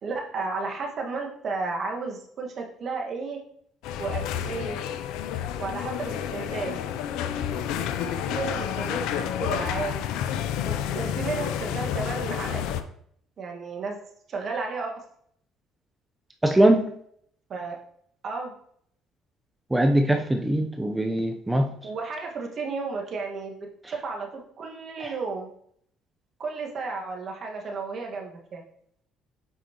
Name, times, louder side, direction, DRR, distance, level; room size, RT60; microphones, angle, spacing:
voice 1, 0.0-3.4 4.0-4.8 5.6-6.8 8.3-10.0 10.6-12.8 13.4-14.0 14.3-15.0 17.5-17.8 18.2-18.5 21.8-25.5 26.4-28.7, right 4 dB, 50° right, 1 dB, 1.7 m, -33 dB
sound 1, 3.8-12.8, left 9 dB, 75° left, 0.5 m, -30 dB
voice 2, 16.4-16.9 19.7-21.7 25.0-25.1, right 1 dB, 10° right, 4 dB, 0.7 m, -21 dB
8.4 x 5.1 x 3.0 m, 0.66 s
hypercardioid pair, 60°, 0 cm